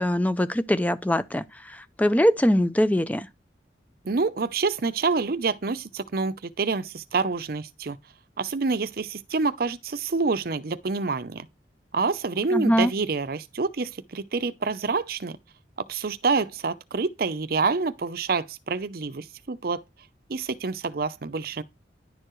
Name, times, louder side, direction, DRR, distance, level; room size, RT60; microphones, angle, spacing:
voice 1, 0.0-3.3 12.5-12.9, equal, 10° left, 0.4 m, -22 dB
voice 2, 4.0-8.0 8.4-11.5 11.9-15.4 15.9-19.8 20.3-21.6, right 4 dB, 55° right, 0.6 m, -27 dB
10.5 x 6.7 x 3.1 m
head